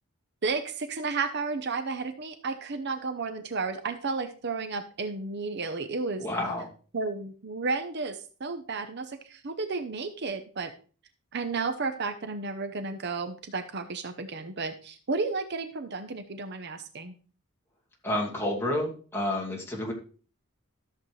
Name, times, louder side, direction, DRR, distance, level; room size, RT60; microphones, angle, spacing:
voice 1, 0.4-6.3 6.9-10.7 11.3-17.1, right 4 dB, 50° right, 9 dB, 0.7 m, -32 dB
voice 2, 6.2-6.7 18.0-19.9, left 1 dB, 10° left, -2 dB, 2.4 m, -30 dB
13.5 x 7.2 x 3.2 m, 0.39 s
head